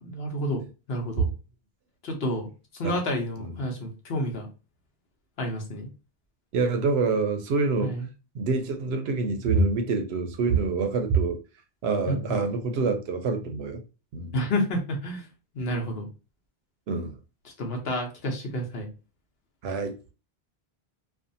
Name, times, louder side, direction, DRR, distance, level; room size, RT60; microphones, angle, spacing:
voice 1, 0.0-0.6 0.9-1.3 2.0-4.5 5.4-5.9 7.8-8.1 12.1-12.4 14.3-15.3 15.5-16.1 17.4-18.9, equal, 70° left, 1.0 m, -30 dB
voice 2, 6.5-8.0 8.3-11.4 11.8-13.8 14.1-14.4 16.9-17.2 19.6-20.0, right 4 dB, 75° right, 0.8 m, -26 dB
2.6 x 2.4 x 2.5 m
omnidirectional pair, 1.1 m